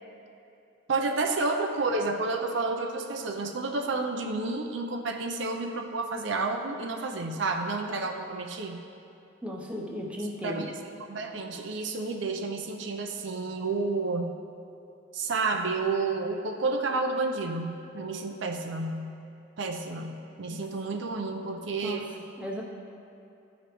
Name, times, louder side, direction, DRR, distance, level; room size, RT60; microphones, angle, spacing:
voice 1, 0.9-8.8 10.4-10.7 11.1-14.4 15.1-19.1 19.6-22.1, right 3 dB, 65° right, 3 dB, 0.5 m, -30 dB
voice 2, 9.4-10.7 20.5-20.6 21.8-22.0 22.4-22.6, equal, 5° right, -2 dB, 0.7 m, -35 dB
13.0 x 5.0 x 3.0 m, 2.7 s
head